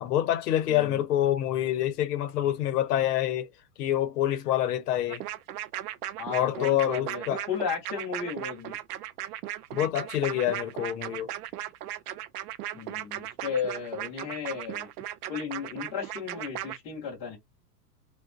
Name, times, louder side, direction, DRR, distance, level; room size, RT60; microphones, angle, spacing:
voice 1, 0.0-3.5 3.8-5.2 6.3-7.4 9.7-11.3, left 12 dB, 70° left, 0.8 m, -26 dB
voice 2, 0.7-1.0 6.2-8.8 12.7-14.9 15.3-17.4, left 6 dB, 15° left, 0.5 m, -34 dB
sound 1, 5.1-16.8, right 13 dB, 65° right, 0.5 m, -37 dB
3.6 x 2.2 x 2.4 m
supercardioid pair, 170°, 49 cm